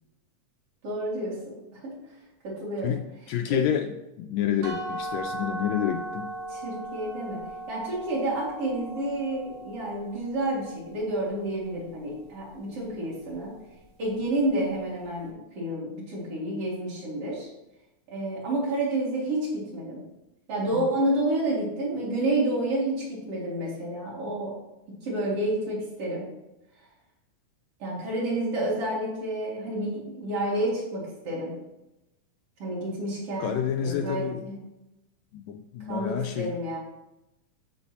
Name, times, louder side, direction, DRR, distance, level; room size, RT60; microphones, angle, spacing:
voice 1, 0.8-1.9 2.4-3.0 3.5-3.6 6.5-13.5 14.0-17.5 18.1-20.0 20.5-24.6 24.9-26.2 27.8-31.5 32.6-34.6 35.8-36.8, right 1 dB, 50° right, -5 dB, 3.0 m, -30 dB
voice 2, 3.3-6.3 20.8-20.9 33.4-34.5 35.3-36.5, left 9 dB, 80° left, 5 dB, 1.7 m, -29 dB
sound 1, 4.6-10.4, right 2 dB, 70° right, 2.7 m, -37 dB
14.0 x 4.7 x 2.9 m, 0.96 s
omnidirectional pair, 3.5 m